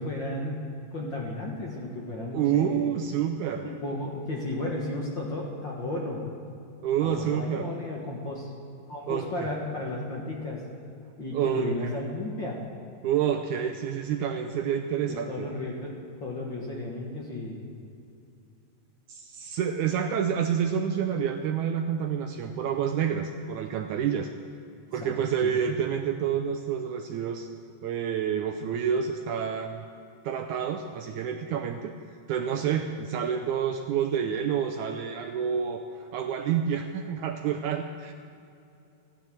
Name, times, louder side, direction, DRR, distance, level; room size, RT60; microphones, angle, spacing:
voice 1, 0.0-2.9 3.6-6.2 7.0-8.5 8.9-10.6 11.2-12.6 15.0-17.7 25.0-25.1 25.4-25.5, left 2 dB, 45° left, -2 dB, 1.6 m, -34 dB
voice 2, 2.3-3.7 6.8-7.7 9.1-9.5 11.3-11.7 13.0-15.5 19.1-24.3 24.9-27.5 27.8-29.8 30.2-31.9 32.3-38.1, right 8 dB, 80° right, 6 dB, 1.8 m, -28 dB
15.0 x 10.0 x 7.6 m, 2.6 s
omnidirectional pair, 4.0 m